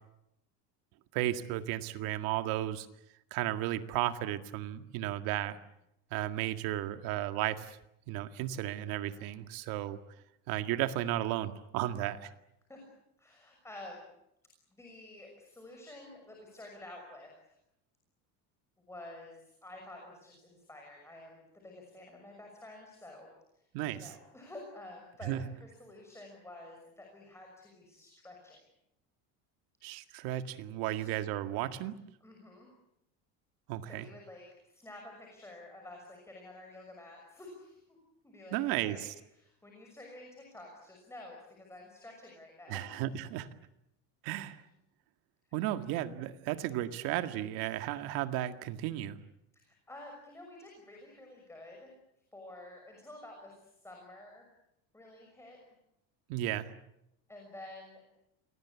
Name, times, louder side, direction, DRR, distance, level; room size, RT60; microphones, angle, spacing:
voice 1, 1.1-2.9 3.3-5.6 6.1-7.8 8.1-10.0 10.5-12.3 23.7-24.1 25.2-25.5 29.8-32.0 33.7-34.1 38.5-39.1 42.7-43.5 44.2-44.6 45.5-49.2 56.3-56.7, right 13 dB, 70° right, 9 dB, 2.0 m, -34 dB
voice 2, 9.0-9.4 12.7-12.9 13.2-14.0 14.7-17.3 18.9-23.3 23.9-28.6 30.9-31.1 32.2-32.7 33.9-38.0 38.2-39.1 39.3-42.8 44.2-44.5 49.5-51.9 52.3-54.5 54.9-55.6 57.3-58.0, left 2 dB, 5° left, 1 dB, 6.1 m, -50 dB
28.5 x 22.0 x 8.5 m, 0.83 s
cardioid pair, 145°, 38 cm